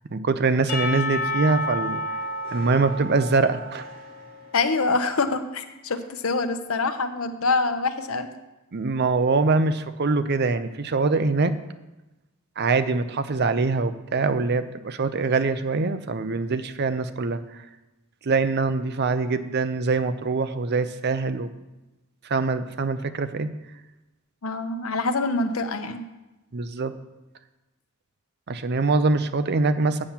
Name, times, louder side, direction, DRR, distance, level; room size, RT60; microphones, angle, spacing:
voice 1, 0.1-2.2 2.5-3.8 8.7-11.5 12.6-17.6 18.2-21.5 22.2-23.5 26.5-26.9 28.5-30.0, right 3 dB, 50° right, 11 dB, 0.6 m, -24 dB
Percussion / Church bell, 0.7-4.8, left 2 dB, 45° left, 2.1 m, -31 dB
voice 2, 4.5-8.3 24.4-26.0, left 3 dB, 85° left, 9 dB, 0.8 m, -25 dB
8.7 x 5.8 x 7.3 m, 1.0 s
head